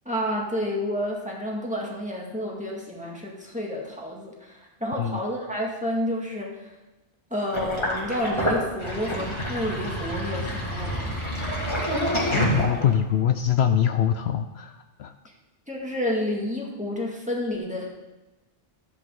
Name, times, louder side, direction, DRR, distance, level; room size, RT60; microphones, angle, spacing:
voice 1, 0.1-6.6 7.3-11.2 15.7-17.9, left 1 dB, 5° right, -3 dB, 1.9 m, -30 dB
Sink (filling or washing), 7.5-13.1, equal, 25° left, 2.3 m, -27 dB
voice 2, 12.3-15.1, left 9 dB, 70° left, 8 dB, 0.8 m, -24 dB
13.5 x 8.1 x 3.8 m, 1.1 s
omnidirectional pair, 1.2 m